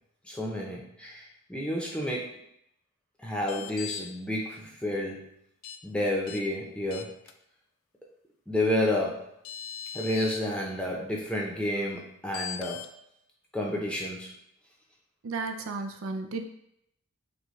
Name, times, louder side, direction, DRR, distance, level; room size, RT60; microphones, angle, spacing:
voice 1, 0.3-2.4 3.2-5.3 5.8-7.2 8.5-9.3 9.9-12.9 13.5-14.3, left 1 dB, 5° left, -2 dB, 0.7 m, -30 dB
sound 1, 3.4-4.0 5.6-5.8 6.3-6.4 6.9-7.3 9.0-9.1 9.4-10.4 12.3-12.9, left 10 dB, 75° left, 0.4 m, -39 dB
voice 2, 15.2-16.4, right 3 dB, 75° right, 5 dB, 0.5 m, -33 dB
6.3 x 2.3 x 3.2 m, 0.76 s
head